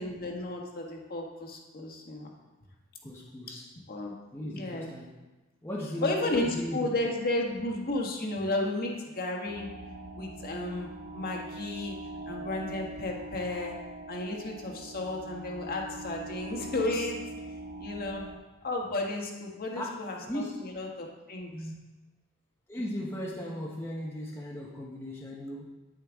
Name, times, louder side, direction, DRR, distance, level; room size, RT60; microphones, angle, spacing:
voice 1, 0.0-2.3 3.5-3.6 3.9-4.1 4.5-4.9 6.0-9.6 10.2-12.0 12.3-13.8 14.1-17.2 17.8-18.2 18.6-21.7, left 2 dB, 45° left, 0 dB, 1.5 m, -33 dB
voice 2, 3.0-3.7 4.3-5.1 5.6-6.9 19.7-20.8 22.7-25.7, equal, 10° left, -4 dB, 1.0 m, -37 dB
sound 1, 9.5-18.4, right 2 dB, 60° right, 1.7 m, -42 dB
9.6 x 8.9 x 3.6 m, 1.2 s
head